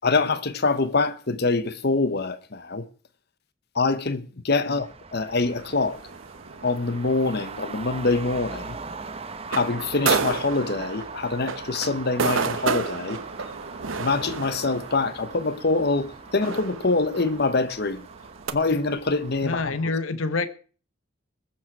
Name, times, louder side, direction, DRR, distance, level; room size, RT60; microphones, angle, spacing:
voice 1, 0.0-2.9 3.7-6.0 6.6-8.8 9.5-13.2 14.0-18.0 18.5-19.9, left 3 dB, 55° left, 1.0 m, -25 dB
Traffic noise roadway noise, 4.7-19.7, right 4 dB, 30° right, 0.9 m, -41 dB
sound 1, 5.6-18.5, right 5 dB, 75° right, 1.0 m, -32 dB
voice 2, 19.4-20.5, left 3 dB, 85° left, 1.2 m, -27 dB
21.0 x 7.5 x 4.7 m
head